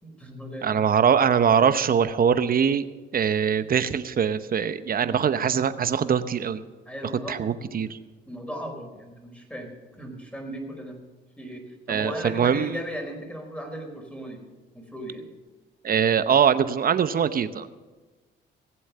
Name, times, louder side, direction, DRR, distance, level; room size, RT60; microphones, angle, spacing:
voice 1, 0.0-1.0 4.9-5.2 6.9-7.9 8.3-11.0 11.4-14.4 14.7-15.2, equal, 5° left, 3 dB, 4.2 m, -37 dB
voice 2, 0.6-2.8 3.1-6.6 7.3-7.9 11.9-12.8 15.8-17.7, right 7 dB, 45° right, 12 dB, 0.9 m, -22 dB
18.5 x 7.9 x 6.8 m, 1.3 s
cardioid pair, 90°, 20 cm